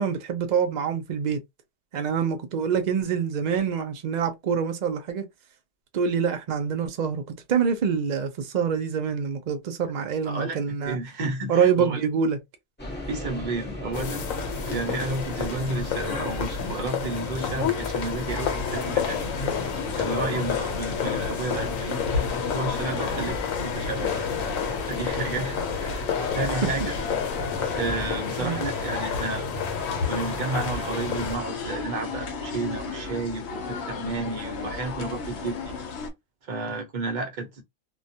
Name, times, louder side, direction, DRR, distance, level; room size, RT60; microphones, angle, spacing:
voice 1, 0.0-1.4 1.9-5.2 5.9-7.2 7.5-11.0 11.5-12.4 28.4-28.6, right 7 dB, 85° right, 0.4 m, -25 dB
voice 2, 10.2-10.6 10.9-12.0 13.1-14.2 14.7-19.4 20.0-24.3 24.9-26.0 26.3-26.9 27.7-29.5 30.1-35.8 36.4-37.6, right 3 dB, 45° right, 0.7 m, -32 dB
sound 1, 12.8-28.2, equal, 10° left, 0.8 m, -39 dB
sound 2, 13.9-31.4, left 6 dB, 85° left, 1.1 m, -30 dB
sound 3, 18.3-36.1, left 4 dB, 65° left, 0.8 m, -35 dB
2.3 x 2.1 x 2.7 m
omnidirectional pair, 1.4 m